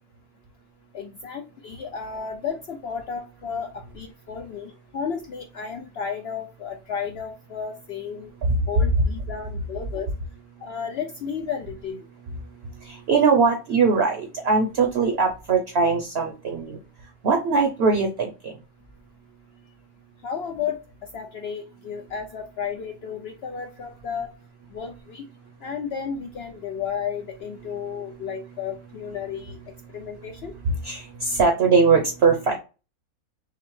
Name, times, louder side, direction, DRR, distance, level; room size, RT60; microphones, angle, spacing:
voice 1, 0.9-8.3 8.7-10.1 10.6-12.0 20.2-20.8 21.1-24.3 24.7-25.2 25.6-29.6 29.9-30.5, left 6 dB, 70° left, 4 dB, 0.6 m, -33 dB
voice 2, 12.8-16.8 17.2-18.6 30.7-32.6, right 4 dB, 55° right, 4 dB, 0.8 m, -21 dB
5.9 x 2.1 x 3.1 m, 0.31 s
omnidirectional pair, 1.5 m